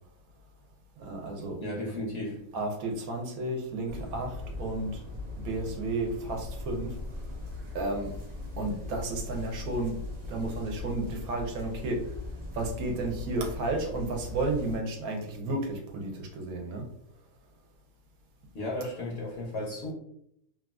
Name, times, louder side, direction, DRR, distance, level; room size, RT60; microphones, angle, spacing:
voice 1, 1.0-1.6 2.5-5.0 5.4-6.9 7.7-8.2 8.6-10.0 10.3-12.0 12.5-16.9, right 2 dB, 80° right, 1.1 m, -32 dB
voice 2, 1.6-2.4 18.5-19.9, left 1 dB, 55° left, 0.7 m, -34 dB
sound 1, 3.9-14.8, left 2 dB, 60° right, 0.4 m, -40 dB
3.0 x 2.3 x 2.3 m
omnidirectional pair, 1.5 m